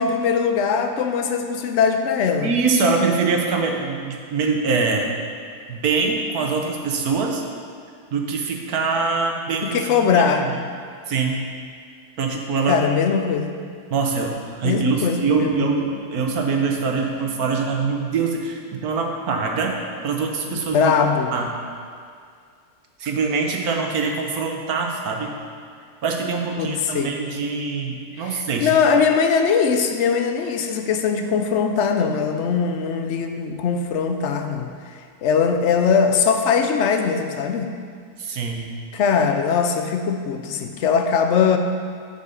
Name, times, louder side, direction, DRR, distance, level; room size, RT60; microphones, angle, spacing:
voice 1, 0.0-2.5 9.6-10.5 12.7-13.6 14.6-15.7 20.5-21.3 26.6-27.2 28.2-34.7 35.2-37.7 38.9-41.6, left 6 dB, 65° left, 6 dB, 0.7 m, -21 dB
voice 2, 2.4-5.1 5.7-7.4 8.1-9.8 10.1-10.5 11.1-11.4 12.2-12.8 13.9-19.8 20.0-21.0 21.3-21.5 23.0-25.3 26.0-28.7 38.2-38.7, right 4 dB, 65° right, 2 dB, 1.3 m, -23 dB
7.8 x 5.5 x 6.6 m, 2.2 s
omnidirectional pair, 1.8 m